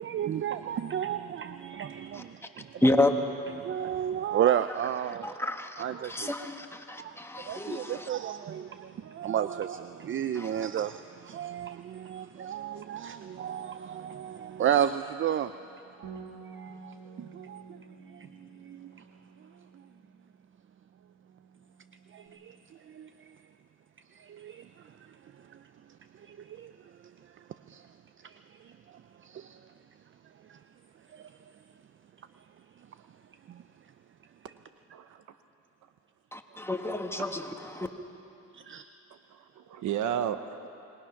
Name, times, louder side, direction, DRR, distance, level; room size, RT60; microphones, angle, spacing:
voice 1, 0.0-2.9 3.6-5.4 5.8-6.3 7.0-15.7 16.0-16.1 16.4-17.8 18.1-19.0 22.1-22.6 22.9-23.3 24.2-24.7 25.5-25.6 26.2-26.7 27.7-27.8 28.2-28.7 29.2-29.6 30.5-30.6 31.1-31.3 33.5-33.6 38.5-38.9, right 10 dB, 40° right, 11 dB, 0.5 m, -33 dB
voice 2, 5.2-8.1 10.3-10.6 36.3-37.9, left 2 dB, 10° left, 4 dB, 1.6 m, -30 dB
Bass guitar, 16.0-22.3, right 4 dB, 60° right, 2.6 m, -50 dB
voice 3, 39.3-40.7, right 9 dB, 75° right, 10 dB, 1.0 m, -33 dB
26.5 x 20.0 x 5.9 m, 2.8 s
cardioid pair, 90°, 30 cm